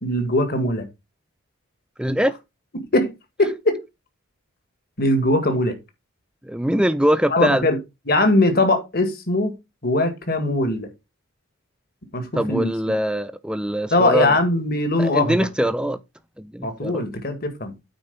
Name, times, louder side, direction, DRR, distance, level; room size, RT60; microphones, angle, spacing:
voice 1, 0.0-0.9 2.9-3.1 3.4-3.8 5.0-5.8 7.3-7.8 8.1-9.6 9.8-10.9 12.1-12.7 13.9-15.4 16.6-17.7, left 2 dB, 45° left, 2.0 m, -20 dB
voice 2, 2.0-2.3 6.4-7.7 12.4-14.3 15.0-16.0 16.4-17.0, equal, 5° right, 0.5 m, -22 dB
9.0 x 4.4 x 5.3 m
head